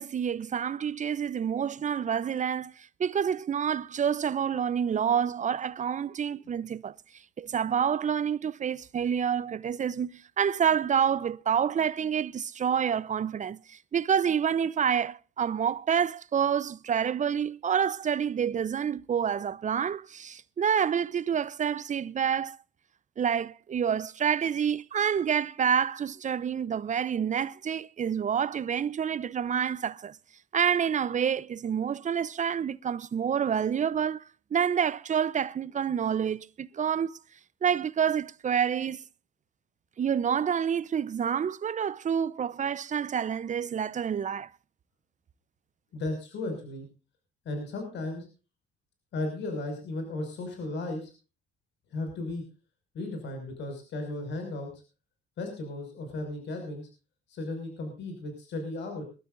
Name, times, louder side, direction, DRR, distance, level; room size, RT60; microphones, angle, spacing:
voice 1, 0.0-6.9 7.4-22.6 23.2-30.1 30.5-34.2 34.5-37.1 37.6-39.0 40.0-44.5, right 8 dB, 40° right, 0.8 m, -28 dB
voice 2, 45.9-46.9 47.4-48.3 49.1-51.1 51.9-52.4 52.9-54.7 55.4-56.9 57.3-59.0, left 2 dB, 65° left, 5.9 m, -35 dB
23.0 x 13.0 x 2.6 m
cardioid pair, 85°, 20 cm